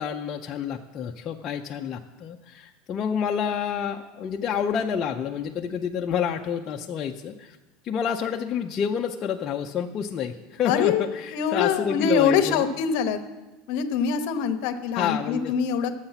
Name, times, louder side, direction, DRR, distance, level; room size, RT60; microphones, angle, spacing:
voice 1, 0.0-7.6 7.8-12.6 14.9-15.5, left 7 dB, 30° left, 1 dB, 0.5 m, -29 dB
voice 2, 10.6-13.2 13.7-16.0, left 7 dB, 55° left, 9 dB, 0.8 m, -24 dB
12.0 x 7.9 x 5.7 m, 1.1 s
supercardioid pair, 160°, 0 cm